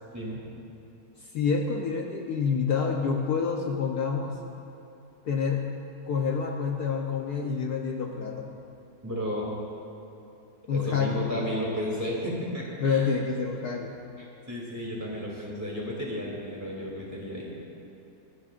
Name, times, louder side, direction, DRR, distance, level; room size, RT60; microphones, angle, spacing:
voice 1, 1.2-4.3 5.2-5.7 6.1-8.5 10.7-11.2 12.8-13.9, left 5 dB, 65° left, 1 dB, 1.4 m, -28 dB
voice 2, 9.0-9.5 10.7-13.1 14.2-17.5, equal, 10° right, -5 dB, 2.8 m, -33 dB
29.5 x 11.0 x 2.5 m, 2.9 s
omnidirectional pair, 1.9 m